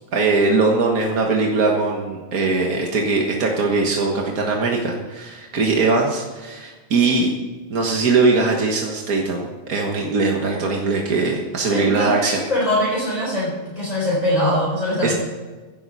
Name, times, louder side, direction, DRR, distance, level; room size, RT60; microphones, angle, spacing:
voice 1, 0.1-7.3 7.7-12.4 15.0-15.1, right 3 dB, 85° right, 0 dB, 1.9 m, -20 dB
voice 2, 11.7-15.1, left 1 dB, 25° left, -6 dB, 4.2 m, -22 dB
16.0 x 11.0 x 4.1 m, 1.4 s
omnidirectional pair, 1.5 m